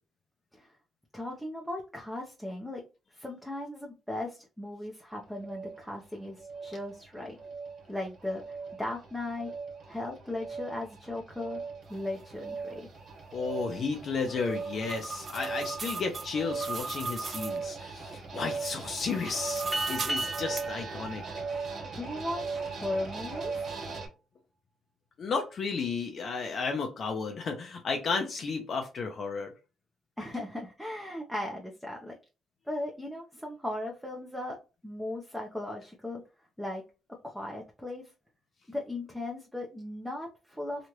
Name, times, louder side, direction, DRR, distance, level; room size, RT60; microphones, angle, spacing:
voice 1, 1.1-2.8 3.1-7.4 7.9-9.5 9.9-11.6 11.9-12.9 21.9-23.7 30.2-32.2 32.7-34.6 34.8-36.2 36.6-36.8 37.2-38.1 38.7-40.9, left 1 dB, ahead, 0.7 m, -37 dB
sound 1, 5.1-24.1, right 4 dB, 60° right, 1.5 m, -39 dB
voice 2, 13.3-21.2 25.2-29.5, left 4 dB, 55° left, 0.6 m, -33 dB
sound 2, 14.3-17.6 19.0-20.7, right 4 dB, 45° right, 0.4 m, -38 dB
sound 3, 19.7-22.7, right 2 dB, 20° right, 1.4 m, -37 dB
3.1 x 2.4 x 2.9 m
cardioid pair, 90°, 0 cm